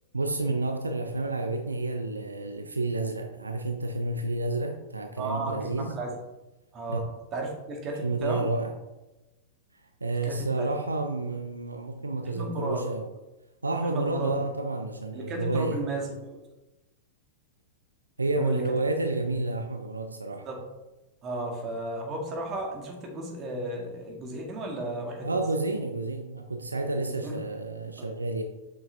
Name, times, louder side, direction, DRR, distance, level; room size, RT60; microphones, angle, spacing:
voice 1, 0.1-5.9 6.9-7.0 7.3-7.5 8.0-8.7 10.0-13.1 13.6-15.8 18.2-20.5 25.2-28.4, right 2 dB, 85° right, 6 dB, 0.6 m, -30 dB
voice 2, 5.2-6.2 6.7-7.1 7.3-8.5 10.3-10.7 12.3-12.8 13.8-14.3 15.1-16.4 18.4-18.7 20.5-20.6 21.2-25.4 27.2-27.3 28.0-28.1, right 2 dB, 30° right, 2 dB, 2.0 m, -34 dB
7.4 x 5.9 x 3.4 m, 1.0 s
figure-of-eight pair, 95°, 0 cm